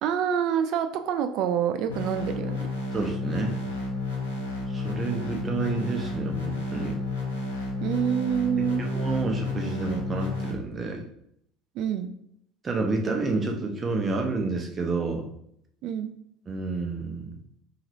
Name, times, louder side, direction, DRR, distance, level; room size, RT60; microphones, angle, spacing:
voice 1, 0.0-2.7 7.8-8.8 11.8-12.1 15.8-16.1, right 8 dB, 55° right, 9 dB, 0.3 m, -27 dB
sound 1, 1.9-10.5, left 3 dB, 85° left, 0.6 m, -31 dB
voice 2, 2.9-3.7 4.7-7.0 8.6-11.1 12.6-15.3 16.5-17.4, right 3 dB, 30° right, 2 dB, 0.7 m, -29 dB
3.0 x 2.8 x 2.5 m, 0.71 s
figure-of-eight pair, 65°, 0 cm